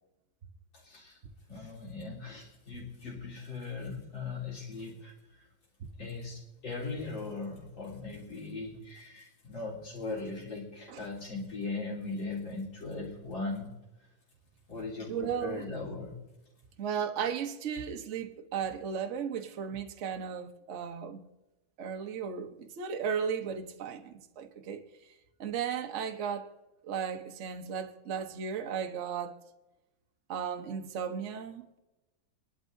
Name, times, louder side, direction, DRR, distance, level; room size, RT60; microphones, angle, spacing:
voice 1, 0.7-1.2 1.5-5.5 6.0-13.7 14.7-16.1, left 3 dB, 75° left, 4.4 m, -39 dB
voice 2, 15.1-15.6 16.8-21.3 21.8-24.8 25.4-26.5 26.8-29.4 30.3-31.8, right 7 dB, 50° right, 0.9 m, -35 dB
23.0 x 11.5 x 2.7 m
omnidirectional pair, 2.1 m